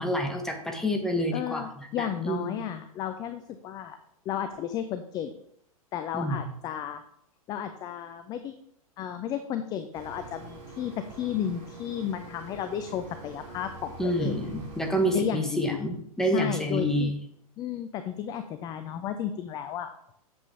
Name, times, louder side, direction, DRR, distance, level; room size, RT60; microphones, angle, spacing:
voice 1, 0.0-1.7 2.0-2.6 6.1-6.5 14.0-17.2, equal, 5° left, 3 dB, 1.1 m, -28 dB
voice 2, 1.3-4.0 4.3-5.3 5.9-7.0 7.5-8.5 9.0-14.3 15.1-15.8 16.2-17.1 17.6-20.1, left 9 dB, 20° left, 9 dB, 0.4 m, -33 dB
sound 1, 9.9-15.2, right 3 dB, 30° right, 2.3 m, -45 dB
7.7 x 7.2 x 3.4 m, 0.71 s
figure-of-eight pair, 100°, 19 cm